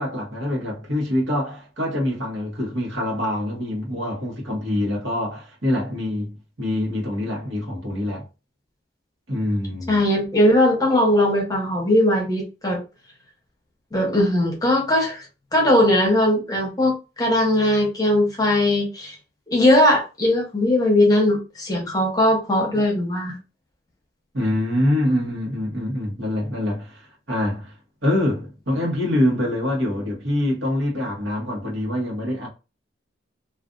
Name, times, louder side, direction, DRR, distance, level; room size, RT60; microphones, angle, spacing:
voice 1, 0.0-8.3 9.3-10.0 24.3-27.7 28.0-32.5, left 1 dB, 75° right, 1.1 m, -25 dB
voice 2, 9.9-12.8 13.9-15.2 15.5-19.2 19.5-23.3, left 1 dB, 20° left, 0.9 m, -19 dB
2.5 x 2.4 x 2.4 m
head